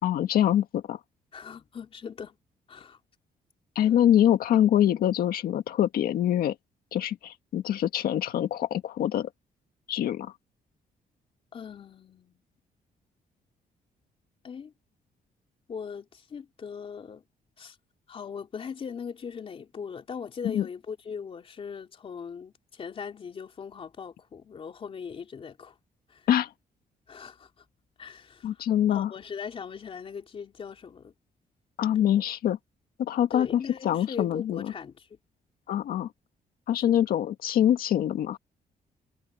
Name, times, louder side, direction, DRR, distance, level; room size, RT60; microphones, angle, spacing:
voice 1, 0.0-1.0 3.7-6.5 6.9-9.3 9.9-10.3 20.4-20.7 26.3-26.5 28.4-29.1 31.8-32.6 33.0-34.7 35.7-36.1 36.7-38.4, left 11 dB, 75° left, 1.7 m, -24 dB
voice 2, 1.3-2.4 2.7-3.0 11.5-12.4 14.4-14.7 15.7-17.2 17.6-17.8 18.1-25.8 26.1-26.3 27.1-27.5 28.0-28.6 28.9-31.1 33.3-35.1 36.8-36.9, left 6 dB, 35° left, 3.5 m, -40 dB
cardioid pair, 160°, 15 cm